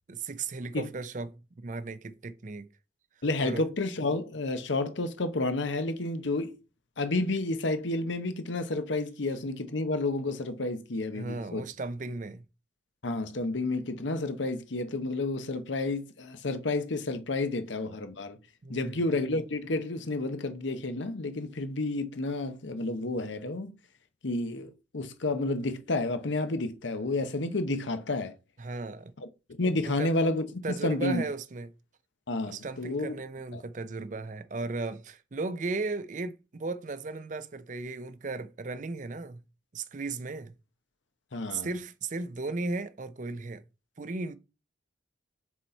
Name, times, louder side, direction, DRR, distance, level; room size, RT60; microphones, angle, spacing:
voice 1, 0.1-2.7 3.4-3.6 11.1-12.4 18.6-19.0 28.6-29.1 29.8-30.1 30.6-31.7 32.5-39.4 39.7-40.5 41.5-43.6 44.0-44.4, right 3 dB, 40° right, 0.5 m, -36 dB
voice 2, 3.2-6.6 7.0-11.7 13.0-18.4 18.7-23.7 24.2-28.3 29.2-29.3 29.6-31.2 32.3-33.2 33.5-33.6 41.3-41.7, left 2 dB, 80° left, 0.9 m, -30 dB
6.1 x 4.2 x 4.4 m
head